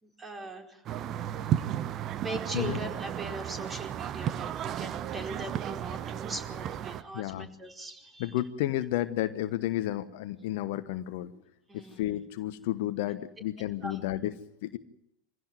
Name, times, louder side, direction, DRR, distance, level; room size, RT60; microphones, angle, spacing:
voice 1, 0.0-0.8 2.2-8.3 11.7-12.0 13.8-14.0, right 2 dB, 15° right, 4 dB, 4.7 m, -40 dB
sound 1, 0.9-7.0, right 10 dB, 35° right, 1.0 m, -34 dB
voice 2, 7.1-7.5 8.2-11.3 11.7-14.3 14.6-14.8, left 14 dB, 55° left, 13 dB, 1.1 m, -32 dB
24.5 x 16.5 x 9.6 m, 0.75 s
figure-of-eight pair, 85°, 0 cm